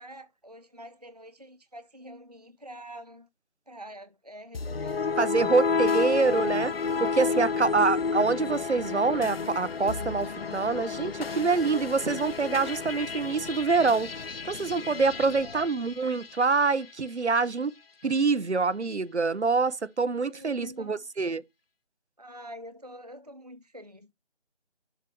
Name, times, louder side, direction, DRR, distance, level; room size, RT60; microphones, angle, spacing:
voice 1, 0.0-3.3 3.7-5.5 7.2-7.7 15.4-15.7 20.2-21.1 22.2-24.1, equal, 35° right, 0.5 m, -46 dB
sound 1, 4.5-16.9, left 5 dB, 60° left, 0.4 m, -31 dB
voice 2, 5.2-6.7 7.0-14.1 14.5-17.7 18.0-21.4, right 4 dB, 75° right, 0.9 m, -26 dB
7.4 x 3.2 x 6.2 m
figure-of-eight pair, 170°, 34 cm